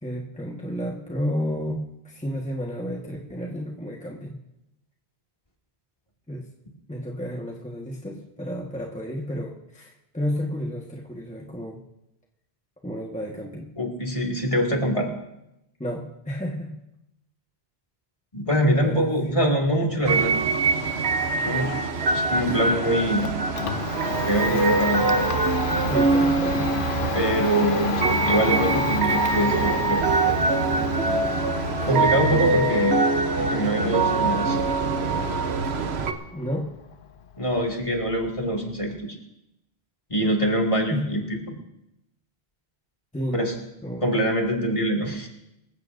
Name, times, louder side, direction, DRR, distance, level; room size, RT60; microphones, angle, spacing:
voice 1, 0.0-4.4 6.3-6.5 6.9-11.8 12.8-13.7 15.8-16.7 18.8-19.1 25.9-26.6 31.8-32.9 36.3-36.7 40.9-41.0 43.1-44.0, equal, 5° left, -2 dB, 1.4 m, -31 dB
voice 2, 13.8-15.1 18.3-20.3 21.4-21.8 22.1-23.3 24.2-25.1 27.1-30.4 31.9-33.0 33.4-34.6 37.4-39.0 40.1-41.6 43.3-43.5 44.0-45.3, equal, 30° left, 0 dB, 2.3 m, -24 dB
sound 1, 20.0-36.1, right 3 dB, 90° right, 1.3 m, -23 dB
Domestic sounds home sounds, 22.7-38.6, left 7 dB, 60° left, 0.8 m, -33 dB
25.5 x 15.0 x 2.6 m, 0.86 s
omnidirectional pair, 1.1 m